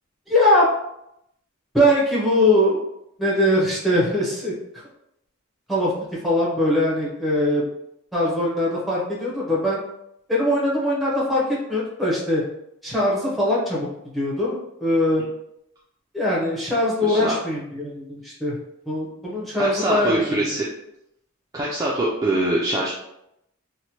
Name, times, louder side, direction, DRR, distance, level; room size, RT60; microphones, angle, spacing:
voice 1, 0.3-0.7 1.7-2.8 3.2-4.5 5.7-5.9 6.2-7.7 8.1-9.8 10.3-12.4 12.8-13.9 14.1-15.2 16.1-18.6 18.9-20.5, left 1 dB, ahead, -5 dB, 0.7 m, -21 dB
voice 2, 17.0-17.4 19.6-20.7 21.5-22.9, right 1 dB, 15° right, -5 dB, 0.3 m, -23 dB
3.0 x 2.1 x 2.8 m, 0.81 s
head